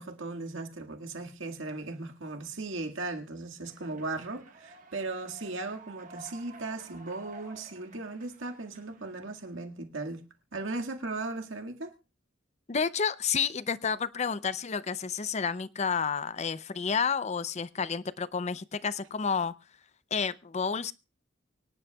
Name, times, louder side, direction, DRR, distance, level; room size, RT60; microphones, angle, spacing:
voice 1, 0.0-10.2 10.5-11.9, right 3 dB, 80° right, 1.9 m, -37 dB
Human voice / Clapping / Cheering, 3.6-9.6, right 2 dB, 40° right, 1.4 m, -52 dB
voice 2, 12.7-19.5 20.1-20.9, left 6 dB, 35° left, 0.5 m, -30 dB
24.5 x 10.5 x 2.3 m
head